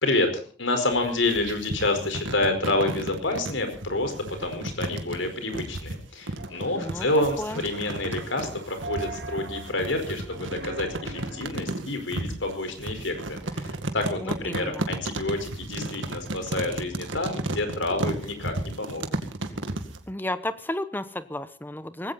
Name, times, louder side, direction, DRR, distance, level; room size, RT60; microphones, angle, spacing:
voice 1, 0.0-19.0, left 2 dB, 85° left, 7 dB, 4.7 m, -28 dB
sound 1, 0.9-20.0, right 2 dB, 90° right, 2.1 m, -33 dB
sound 2, 6.4-11.4, right 2 dB, 65° right, 3.6 m, -41 dB
voice 2, 6.7-7.1 7.4-7.6 14.2-14.8 20.1-22.1, left 1 dB, 10° left, 13 dB, 1.0 m, -32 dB
19.0 x 16.5 x 4.2 m, 0.41 s
head